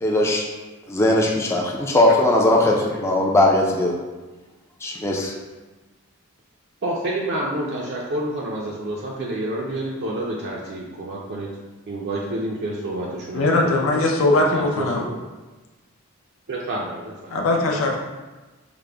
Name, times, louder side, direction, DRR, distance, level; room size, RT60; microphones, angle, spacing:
voice 1, 0.0-0.4 0.9-4.0 4.8-5.3, left 1 dB, 10° left, -1 dB, 0.3 m, -19 dB
voice 2, 6.8-11.5 11.9-15.2 16.5-17.3, right 1 dB, 55° right, -3 dB, 0.4 m, -29 dB
voice 3, 13.3-15.0 17.3-18.0, left 2 dB, 70° left, 0 dB, 0.5 m, -20 dB
5.0 x 2.0 x 3.3 m, 1.2 s
head